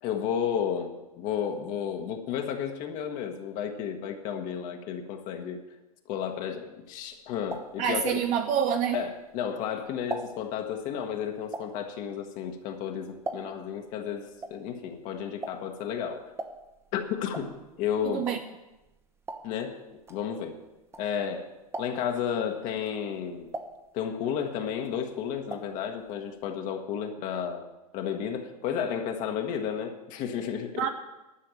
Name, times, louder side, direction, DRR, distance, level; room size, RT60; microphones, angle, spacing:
voice 1, 0.0-5.6 6.1-8.2 8.9-16.3 16.9-18.2 19.4-20.6 21.0-21.4 21.8-23.5 23.9-27.7 27.9-30.9, left 8 dB, 40° left, 1.3 m, -32 dB
sound 1, 6.9-9.5 9.8-13.8 14.1-21.4 21.7-22.2 22.7-24.4 24.7-25.8 26.1-26.2 26.4-26.5, right 2 dB, 10° right, 0.9 m, -41 dB
voice 2, 7.8-9.0 18.0-18.4 30.8-30.9, right 8 dB, 40° right, 0.7 m, -27 dB
11.5 x 5.8 x 8.7 m
hypercardioid pair, 100°, 20 cm